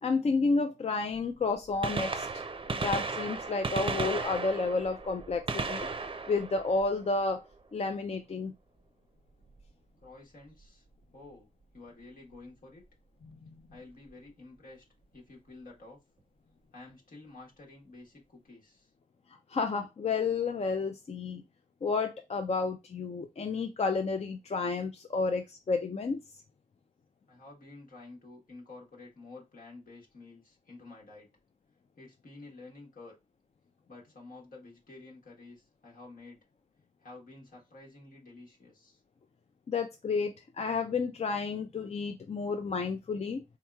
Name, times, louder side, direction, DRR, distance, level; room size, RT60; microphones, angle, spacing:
voice 1, 0.0-2.4 2.8-5.9 6.3-7.4 7.7-8.5 13.4-13.5 19.5-21.4 21.8-26.2 39.7-43.4, left 4 dB, 50° left, 0.4 m, -31 dB
Gunshot gunfire, 1.1-1.2 1.7-7.5 9.5-9.6 10.6-10.7 12.3-12.4 13.8-13.9 14.1-14.2, right 4 dB, 40° right, 0.5 m, -35 dB
voice 2, 10.0-10.8 11.1-11.5 11.7-12.8 13.7-14.8 15.1-16.0 16.7-18.9 27.3-31.3 32.0-33.2 33.9-36.4 37.0-39.0, left 3 dB, 75° left, 1.3 m, -50 dB
3.6 x 2.9 x 2.3 m
cardioid pair, 40°, 14 cm